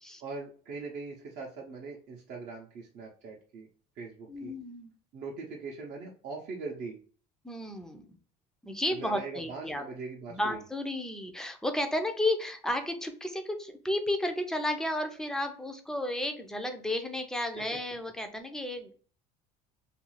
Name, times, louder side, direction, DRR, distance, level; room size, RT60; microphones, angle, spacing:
voice 1, 0.2-3.7 4.0-4.5 5.1-7.0 8.9-10.6 17.6-17.7, right 4 dB, 55° right, -1 dB, 0.6 m, -41 dB
voice 2, 4.3-4.9 7.4-8.1 8.6-9.8 10.3-18.9, left 1 dB, 5° left, 6 dB, 0.4 m, -32 dB
2.5 x 2.3 x 3.0 m, 0.43 s
cardioid pair, 130°, 16 cm